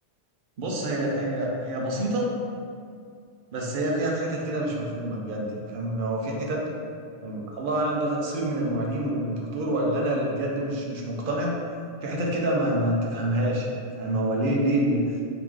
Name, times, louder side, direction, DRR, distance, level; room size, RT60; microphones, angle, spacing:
voice 1, 0.6-2.3 3.5-5.5 5.7-6.7 7.2-11.6 12.0-15.0, right 1 dB, 55° right, -2 dB, 0.7 m, -27 dB
3.1 x 2.9 x 3.6 m, 2.3 s
omnidirectional pair, 1.2 m